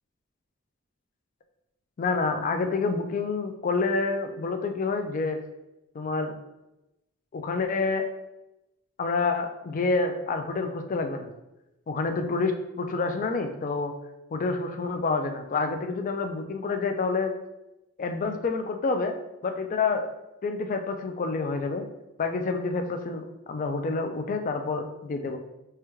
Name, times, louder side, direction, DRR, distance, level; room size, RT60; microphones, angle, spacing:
voice 1, 2.0-5.4 5.9-6.3 7.3-8.0 9.0-11.3 11.9-13.9 14.3-17.3 18.0-19.1 19.4-20.1 20.4-21.9 22.2-25.4, left 4 dB, 35° left, 6 dB, 0.3 m, -28 dB
4.8 x 2.2 x 3.0 m, 0.94 s
head